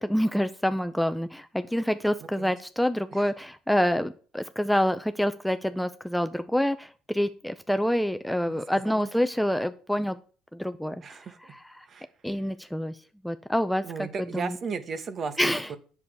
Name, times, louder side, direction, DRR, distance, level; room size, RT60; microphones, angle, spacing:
voice 1, 0.0-10.2 10.5-11.2 11.8-11.9 12.2-13.0 13.2-14.1 14.3-14.5 15.4-15.7, equal, ahead, 10 dB, 0.5 m, -27 dB
voice 2, 2.2-2.5 3.1-3.3 8.5-9.1 11.0-11.5 11.9-12.1 12.3-12.5 13.8-15.8, right 5 dB, 40° right, 11 dB, 1.1 m, -36 dB
8.5 x 6.8 x 4.7 m, 0.40 s
supercardioid pair, 95°, 0 cm